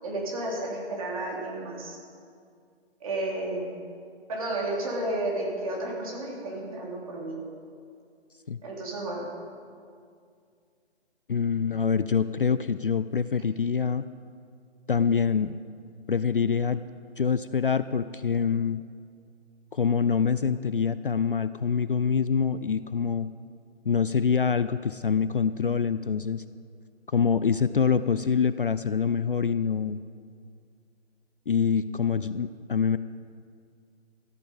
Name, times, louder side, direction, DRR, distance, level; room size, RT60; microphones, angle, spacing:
voice 1, 0.0-2.0 3.0-3.8 4.3-7.3 8.6-9.3, right 1 dB, 30° right, -3 dB, 3.2 m, -32 dB
voice 2, 11.3-14.0 14.9-15.6 16.1-16.8 17.2-18.8 19.7-23.3 23.9-26.4 27.1-30.0 31.5-33.0, left 6 dB, 50° left, 14 dB, 0.4 m, -25 dB
13.5 x 13.5 x 5.4 m, 2.2 s
figure-of-eight pair, 160°, 34 cm